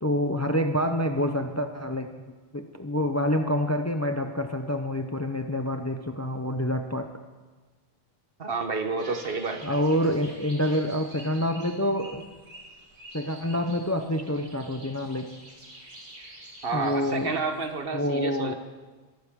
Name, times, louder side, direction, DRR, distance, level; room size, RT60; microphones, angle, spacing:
voice 1, 0.0-2.1 2.5-7.1 9.6-12.2 13.1-15.3 16.7-17.4 17.9-18.5, left 1 dB, 20° left, 6 dB, 0.6 m, -27 dB
voice 2, 8.4-9.7 16.6-18.5, right 4 dB, 65° right, 6 dB, 1.4 m, -30 dB
sound 1, 9.0-17.8, right 1 dB, 90° right, 2.7 m, -48 dB
22.5 x 11.5 x 3.7 m, 1.3 s
omnidirectional pair, 1.0 m